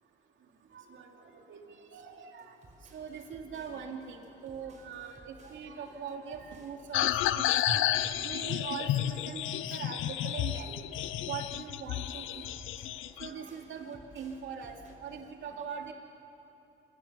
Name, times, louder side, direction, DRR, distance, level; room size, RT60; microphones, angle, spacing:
voice 1, 0.7-2.5 2.9-7.8 8.2-10.8 11.3-12.5 13.2-15.9, right 6 dB, 75° right, 2 dB, 2.7 m, -42 dB
sound 1, 2.4-15.3, right 1 dB, 35° right, 5.7 m, -57 dB
sound 2, 6.9-13.3, left 12 dB, 85° left, 0.6 m, -31 dB
27.0 x 17.0 x 7.0 m, 3.0 s
cardioid pair, 90°, 20 cm